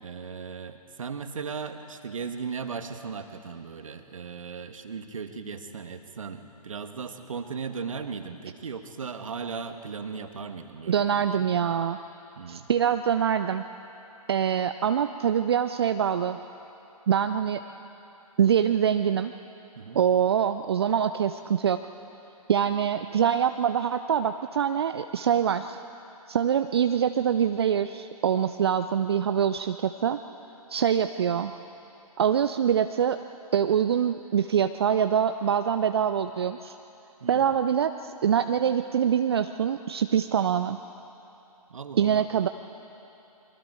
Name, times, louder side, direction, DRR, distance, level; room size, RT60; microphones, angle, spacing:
voice 1, 0.0-11.6 12.4-12.7 19.7-20.0 37.2-37.5 41.7-42.2, right 5 dB, 55° right, 7 dB, 1.6 m, -37 dB
voice 2, 10.9-12.0 12.5-13.6 14.3-16.4 17.1-17.6 18.4-19.3 19.9-21.8 22.5-25.8 26.3-30.2 30.7-31.5 32.2-33.2 33.5-36.7 37.3-40.8 42.0-42.5, right 8 dB, 40° right, 9 dB, 0.5 m, -24 dB
29.0 x 23.0 x 4.6 m, 2.8 s
figure-of-eight pair, 135°, 20 cm